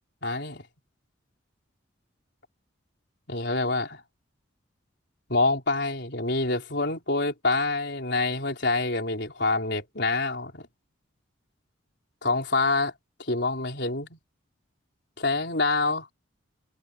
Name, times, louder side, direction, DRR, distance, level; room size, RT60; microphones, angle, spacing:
voice 1, 0.2-0.6 3.3-4.0 5.3-10.7 12.2-12.9 13.2-14.2 15.2-16.1, left 3 dB, 60° left, 4.7 m, -26 dB
head